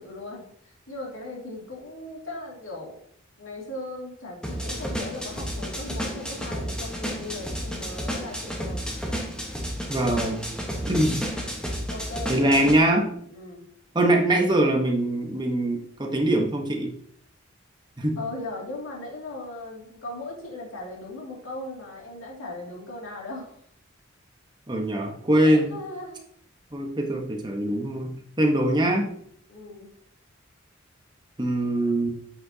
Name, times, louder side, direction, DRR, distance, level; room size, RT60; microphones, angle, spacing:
voice 1, 0.0-3.0 3.4-8.8 11.9-13.0 13.3-13.7 18.2-23.5 25.4-26.2 29.5-29.9, left 2 dB, 75° left, -3 dB, 2.4 m, -38 dB
sound 1, 4.4-12.8, equal, 5° left, 1.1 m, -32 dB
voice 2, 9.9-10.4 10.9-11.2 12.3-13.1 13.9-16.9 18.0-18.2 24.7-25.7 26.7-29.1 31.4-32.1, right 1 dB, 20° right, 1 dB, 1.1 m, -23 dB
8.5 x 5.9 x 2.8 m, 0.65 s
head